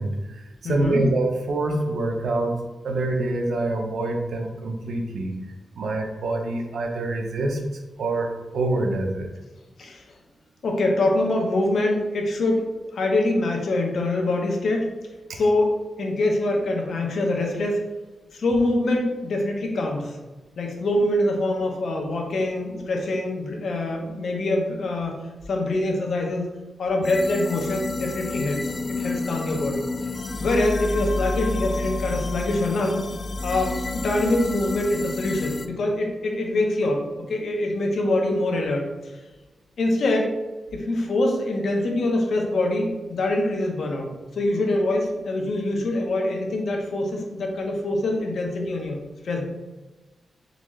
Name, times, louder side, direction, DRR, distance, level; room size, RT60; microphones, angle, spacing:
voice 1, 0.0-2.6 2.8-5.3 5.8-7.6 8.0-9.3, right 2 dB, 75° right, 2 dB, 0.7 m, -26 dB
voice 2, 0.6-1.0 9.8-10.0 10.6-14.9 15.3-17.8 18.3-20.2 20.6-25.1 25.5-26.5 26.8-29.8 30.4-33.0 33.4-38.9 39.8-40.4 40.7-44.1 44.3-49.0 49.2-49.5, left 2 dB, 70° left, 1 dB, 0.9 m, -24 dB
sound 1, 27.0-35.7, left 3 dB, 35° left, 0.3 m, -30 dB
4.0 x 3.6 x 3.2 m, 1.1 s
wide cardioid pair, 120°, 0 cm